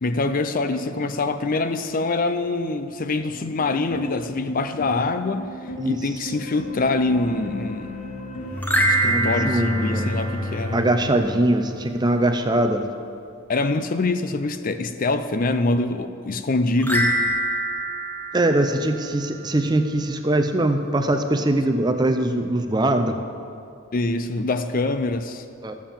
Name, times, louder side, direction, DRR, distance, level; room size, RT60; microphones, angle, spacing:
voice 1, 0.0-7.9 8.8-10.8 13.5-17.2 23.9-25.4, left 3 dB, 40° left, 10 dB, 0.4 m, -24 dB
sound 1, 3.1-11.2, left 1 dB, 80° left, 2.6 m, -32 dB
sound 2, 8.6-11.1 16.8-19.4, right 1 dB, 10° left, 0.9 m, -25 dB
voice 2, 9.0-10.1 10.7-12.9 18.3-23.2 25.6-25.7, right 1 dB, 20° right, 7 dB, 0.5 m, -22 dB
13.0 x 7.2 x 7.3 m, 2.5 s
head